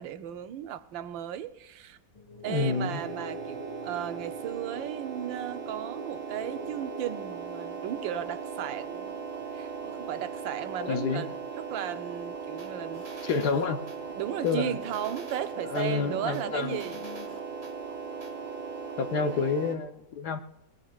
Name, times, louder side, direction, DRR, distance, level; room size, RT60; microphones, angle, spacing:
voice 1, 0.0-2.0 2.4-9.2 9.5-13.3 13.6-13.8 14.1-17.0 19.1-19.4, right 10 dB, 85° right, 1.5 m, -36 dB
sound 1, 2.1-10.6 11.0-11.5 11.9-12.0 12.4-12.5 13.5-15.7 16.0-16.1 16.3-17.3, left 4 dB, 20° left, 2.3 m, -49 dB
sound 2, 2.4-19.8, right 5 dB, 60° right, 1.9 m, -38 dB
voice 2, 2.5-3.0 10.8-11.3 13.2-13.8 14.4-14.8 15.6-16.8 19.0-20.4, left 5 dB, 65° left, 1.4 m, -29 dB
sound 3, 12.6-14.0 14.5-15.9 16.3-17.8 18.2-18.3, right 3 dB, 35° right, 2.2 m, -50 dB
22.0 x 19.5 x 2.4 m
omnidirectional pair, 2.0 m